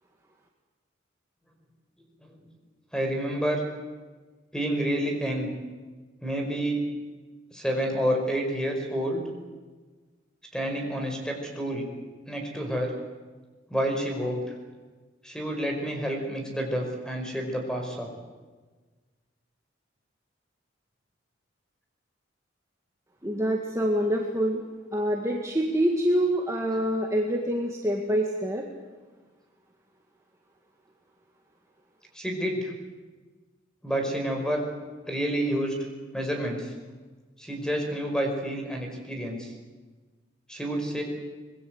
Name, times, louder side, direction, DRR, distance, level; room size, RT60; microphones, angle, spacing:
voice 1, 2.9-3.6 4.5-5.5 6.2-6.8 7.5-9.2 10.5-11.9 12.3-12.9 13.7-14.4 15.2-18.1 32.1-32.7 33.8-34.6 35.1-35.8 36.1-36.7 37.4-39.5 40.5-41.0, equal, 5° left, 3 dB, 5.2 m, -29 dB
voice 2, 23.2-24.6 24.9-28.6, equal, 15° right, 0 dB, 2.0 m, -26 dB
25.5 x 21.0 x 8.1 m, 1.3 s
head